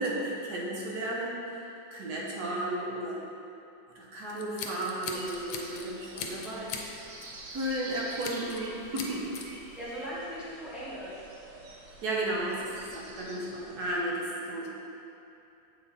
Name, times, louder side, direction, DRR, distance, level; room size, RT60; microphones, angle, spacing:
voice 1, 0.0-3.2 3.9-6.7 7.5-9.4 12.0-14.7, right 1 dB, 65° right, -4 dB, 1.3 m, -34 dB
Scissors, 4.3-5.9 6.2-6.9 7.2-7.4 8.2-8.7 8.9-9.5, left 6 dB, 85° left, 1.3 m, -39 dB
sound 1, 5.1-14.0, right 2 dB, 80° right, 1.4 m, -47 dB
voice 2, 9.5-11.3, equal, ahead, -10 dB, 1.1 m, -40 dB
6.9 x 3.7 x 4.0 m, 2.7 s
omnidirectional pair, 1.9 m